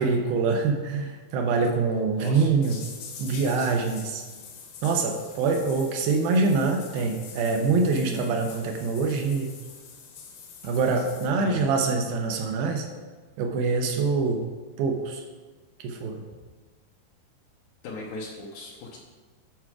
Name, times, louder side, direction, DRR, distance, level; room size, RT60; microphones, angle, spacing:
voice 1, 0.0-2.8 3.2-4.2 4.8-9.5 10.6-12.9 13.4-14.4 14.8-15.2 15.8-16.2, right 4 dB, 75° right, 4 dB, 2.3 m, -25 dB
voice 2, 2.1-2.5 11.4-11.8 17.8-19.0, left 3 dB, 85° left, -2 dB, 1.6 m, -38 dB
sound 1, 2.6-11.3, left 6 dB, 70° left, 1.9 m, -45 dB
11.5 x 4.7 x 4.8 m, 1.4 s
omnidirectional pair, 4.8 m